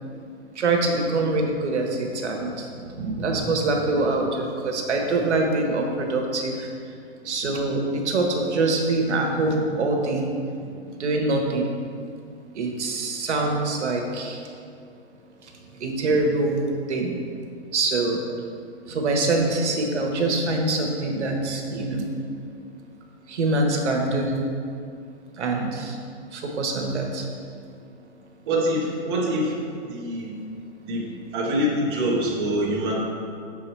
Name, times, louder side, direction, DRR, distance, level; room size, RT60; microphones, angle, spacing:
voice 1, 0.5-6.7 7.2-10.2 11.0-11.7 12.5-14.4 15.8-16.6 16.9-17.1 17.7-18.2 18.9-22.0 23.3-24.4 25.4-26.0 26.3-27.2, right 2 dB, 80° right, 2 dB, 1.2 m, -24 dB
voice 2, 28.5-29.5 29.9-30.3 30.9-31.0 31.3-32.9, equal, 20° right, -6 dB, 0.9 m, -24 dB
6.5 x 4.8 x 4.5 m, 2.4 s
hypercardioid pair, 175°, 34 cm